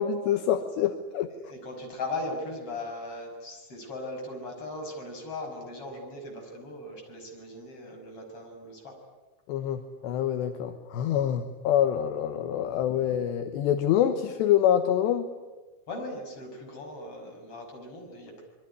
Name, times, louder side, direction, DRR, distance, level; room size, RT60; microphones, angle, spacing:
voice 1, 0.0-1.3 9.5-15.3, left 10 dB, 75° left, 7 dB, 3.2 m, -26 dB
voice 2, 1.3-9.0 15.9-18.4, left 2 dB, 30° left, 2 dB, 6.7 m, -38 dB
27.0 x 23.0 x 9.7 m, 1.2 s
omnidirectional pair, 5.2 m